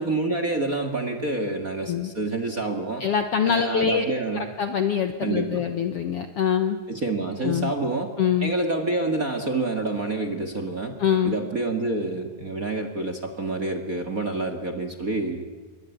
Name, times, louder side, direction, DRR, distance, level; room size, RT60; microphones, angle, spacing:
voice 1, 0.0-3.0 3.4-4.5 5.2-5.7 6.9-8.1 8.4-11.0 11.2-15.5, right 2 dB, 30° right, 7 dB, 1.8 m, -27 dB
voice 2, 3.0-4.0 4.3-6.8 7.4-7.7 8.2-8.5 11.0-11.4, left 8 dB, 60° left, 8 dB, 1.6 m, -24 dB
27.5 x 23.0 x 9.4 m, 1.3 s
omnidirectional pair, 4.0 m